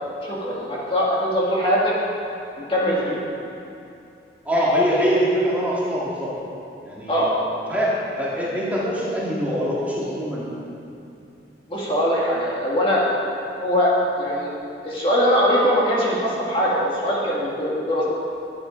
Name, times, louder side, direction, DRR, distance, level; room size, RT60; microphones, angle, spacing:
voice 1, 0.2-1.9 2.6-3.2 7.1-7.3 11.7-13.0 13.6-14.5 14.8-18.0, equal, 30° left, -6 dB, 1.9 m, -21 dB
voice 2, 4.4-6.3 6.8-7.2 7.7-10.5, equal, 10° right, -7 dB, 2.0 m, -23 dB
12.0 x 8.7 x 5.1 m, 2.7 s
head